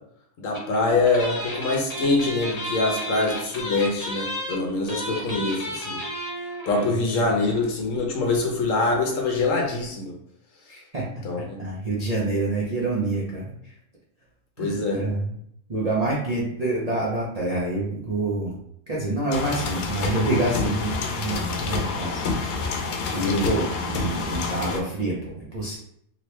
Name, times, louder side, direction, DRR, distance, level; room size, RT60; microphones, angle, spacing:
voice 1, 0.4-6.0 6.7-10.1 11.2-11.6 14.6-15.0 23.2-23.5, left 3 dB, 65° left, 1 dB, 1.0 m, -24 dB
sound 1, 0.5-0.8 1.0-6.9 7.2-7.3 7.5-7.7, equal, 45° left, 0.5 m, -32 dB
voice 2, 6.8-7.5 10.7-13.7 14.6-15.4 15.7-18.5 18.9-22.8 23.1-25.8, right 2 dB, 60° right, -5 dB, 0.4 m, -27 dB
sound 2, 19.3-24.8, left 4 dB, 85° left, 1.2 m, -28 dB
2.9 x 2.9 x 3.1 m, 0.72 s
omnidirectional pair, 1.7 m